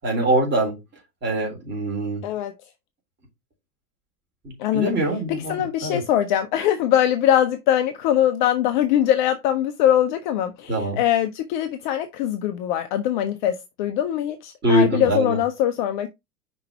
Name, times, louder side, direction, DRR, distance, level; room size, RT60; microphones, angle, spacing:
voice 1, 0.0-0.8 1.2-2.2 4.7-6.0 10.7-11.0 14.6-15.4, right 1 dB, 20° right, 3.7 m, -23 dB
voice 2, 2.2-2.5 4.6-4.9 5.3-16.1, left 11 dB, 30° left, 0.5 m, -22 dB
5.7 x 4.0 x 4.5 m
figure-of-eight pair, 90°, 47 cm